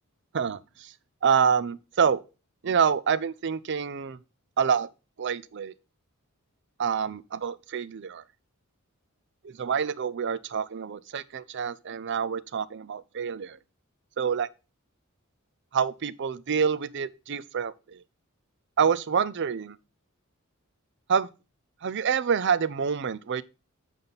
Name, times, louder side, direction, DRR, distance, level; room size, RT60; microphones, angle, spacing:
voice 1, 0.3-0.9 1.2-2.2 2.6-4.2 4.6-4.9 5.2-5.7 6.8-8.2 9.4-13.6 14.2-14.5 15.7-18.0 18.8-19.8 21.1-21.3 21.8-23.4, right 6 dB, 55° right, 0.5 m, -27 dB
7.6 x 5.2 x 4.0 m
head